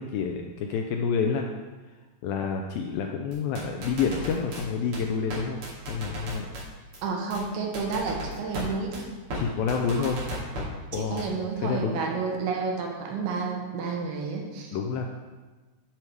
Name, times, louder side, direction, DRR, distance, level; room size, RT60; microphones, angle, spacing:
voice 1, 0.0-1.4 2.2-5.6 5.9-6.5 9.3-10.2 10.9-12.2 14.7-15.1, left 5 dB, 80° left, 3 dB, 2.1 m, -28 dB
sound 1, 3.3-4.6 4.9-5.0 5.3-5.4 5.6-6.6 6.9-7.0 7.3-7.4 7.7-8.6 8.9-9.0 9.3-9.4 9.7-10.6 10.9-11.2, equal, 45° right, 3.3 m, -35 dB
voice 2, 7.0-9.1 10.0-10.1 10.9-14.8, right 4 dB, 75° right, 0 dB, 3.0 m, -31 dB
11.0 x 4.7 x 4.8 m, 1.3 s
omnidirectional pair, 4.6 m